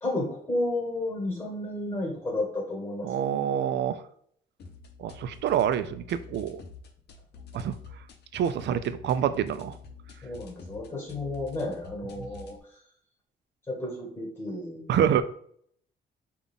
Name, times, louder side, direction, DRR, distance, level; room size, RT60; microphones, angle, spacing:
voice 1, 0.0-3.1 10.2-12.8 13.7-15.0, left 2 dB, 10° left, -1 dB, 1.6 m, -32 dB
voice 2, 3.0-4.0 5.0-6.6 7.5-7.8 8.3-9.7 14.9-15.2, right 9 dB, 60° right, 12 dB, 0.4 m, -26 dB
sound 1, 4.6-12.6, left 5 dB, 55° left, 0.7 m, -48 dB
5.4 x 2.4 x 3.6 m, 0.63 s
cardioid pair, 150°, 20 cm